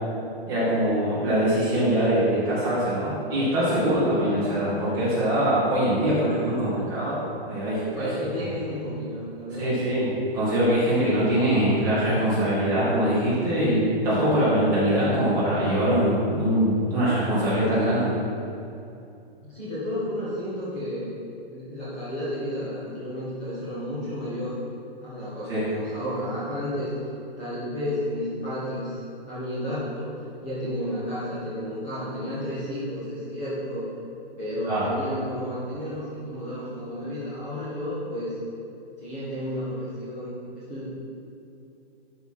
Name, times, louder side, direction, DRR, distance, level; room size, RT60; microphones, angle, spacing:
voice 1, 0.5-7.2 7.5-8.1 9.5-18.1 25.5-25.6 34.7-34.8, right 1 dB, 10° right, -11 dB, 1.7 m, -23 dB
voice 2, 7.9-9.8 19.4-21.0 21.5-24.6 25.0-26.9 27.4-30.1 30.4-33.9 34.4-38.4 39.0-40.9, equal, 15° left, -11 dB, 1.4 m, -32 dB
12.0 x 4.7 x 4.2 m, 2.7 s
hypercardioid pair, 180°, 31 cm